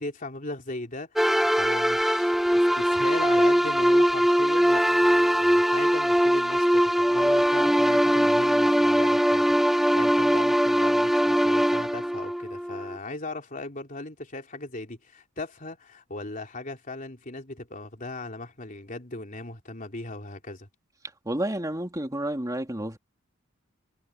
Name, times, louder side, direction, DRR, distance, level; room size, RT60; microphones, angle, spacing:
voice 1, 0.0-20.7, left 2 dB, 40° left, 3.4 m, -38 dB
sound 1, 1.2-13.0, equal, ahead, 0.5 m, -21 dB
voice 2, 21.3-23.0, right 1 dB, 15° right, 2.5 m, -30 dB
head